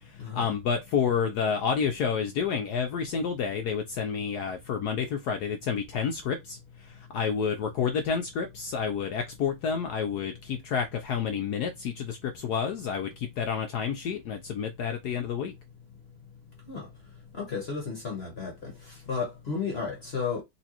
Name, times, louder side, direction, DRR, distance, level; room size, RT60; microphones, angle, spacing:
voice 1, 0.0-15.5, left 6 dB, 80° left, 0.9 m, -29 dB
voice 2, 17.3-18.7 19.1-20.4, left 5 dB, 50° left, 0.7 m, -33 dB
4.1 x 2.7 x 2.8 m
omnidirectional pair, 2.3 m